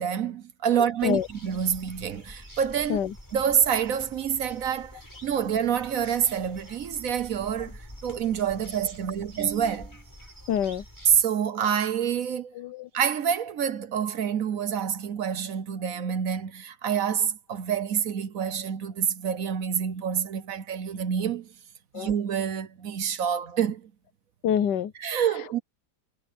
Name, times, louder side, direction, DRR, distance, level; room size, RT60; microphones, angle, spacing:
voice 1, 0.0-3.0 3.3-10.0 11.1-12.5 12.9-21.5 21.9-23.9 25.0-25.6, right 8 dB, 60° right, 1.2 m, -27 dB
voice 2, 0.7-1.3 2.9-3.1 10.5-10.8 12.5-12.9 21.9-22.1 24.4-24.9, left 9 dB, 85° left, 1.5 m, -26 dB
sound 1, 1.0-11.2, equal, 10° left, 7.1 m, -47 dB
omnidirectional pair, 1.8 m